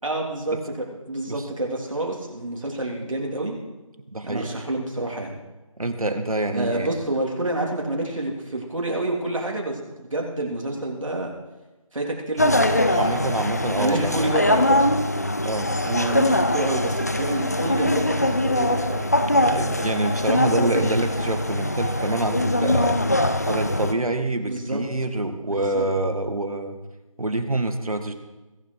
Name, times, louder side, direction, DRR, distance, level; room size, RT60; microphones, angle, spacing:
voice 1, 0.0-3.6 4.2-5.3 6.5-11.3 11.9-13.0 13.8-14.8 15.8-19.1 20.6-20.9 24.5-24.8 25.5-25.9, right 1 dB, 65° right, -1 dB, 3.3 m, -28 dB
voice 2, 4.1-4.5 5.8-6.9 13.0-14.4 15.4-15.7 19.3-23.0 23.5-26.8 27.2-28.1, right 2 dB, 80° right, 7 dB, 2.1 m, -26 dB
sound 1, 12.4-23.9, left 1 dB, 30° left, 0.7 m, -22 dB
21.5 x 9.6 x 4.7 m, 1.1 s
figure-of-eight pair, 175°, 18 cm